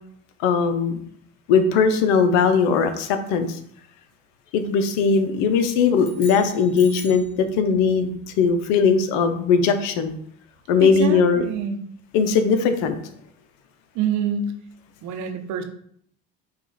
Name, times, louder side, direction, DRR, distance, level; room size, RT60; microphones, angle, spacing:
voice 1, 0.4-1.0 1.5-3.6 4.5-7.2 7.6-10.1 10.7-11.4 12.1-13.0, left 5 dB, 80° left, 9 dB, 0.7 m, -19 dB
sound 1, 6.0-7.3, left 3 dB, 60° left, 1.8 m, -40 dB
voice 2, 10.8-11.8 13.9-14.5 15.0-15.6, right 7 dB, 65° right, 7 dB, 0.8 m, -26 dB
5.3 x 2.5 x 4.0 m, 0.65 s
supercardioid pair, 80°, 32 cm